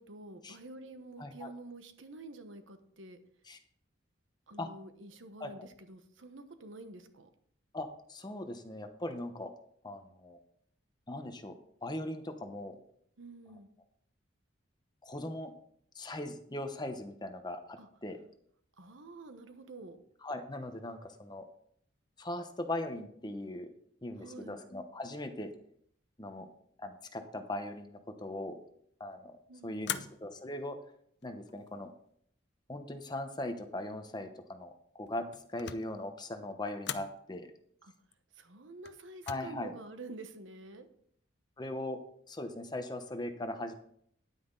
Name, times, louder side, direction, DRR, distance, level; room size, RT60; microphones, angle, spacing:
voice 1, 0.0-3.2 4.5-7.3 13.2-13.7 17.8-17.9 18.8-20.0 24.2-24.6 29.5-30.1 37.8-37.9 38.3-40.9, right 2 dB, 85° right, 8 dB, 1.1 m, -48 dB
voice 2, 1.2-1.5 3.5-3.6 4.6-4.7 5.4-5.7 7.7-9.5 9.8-10.4 11.1-11.6 11.8-12.8 15.0-15.5 15.9-18.2 20.2-21.4 22.2-23.7 24.0-25.5 26.2-26.5 26.8-28.6 29.0-30.8 31.2-31.9 32.7-35.3 35.5-37.5 39.3-39.7 41.6-42.0 42.3-43.7, left 1 dB, 20° left, 7 dB, 0.9 m, -39 dB
sound 1, 29.8-30.5 31.2-31.8 35.1-36.0 36.8-37.2 38.9-39.3, left 9 dB, 60° left, 0.6 m, -40 dB
10.0 x 9.3 x 3.9 m, 0.67 s
head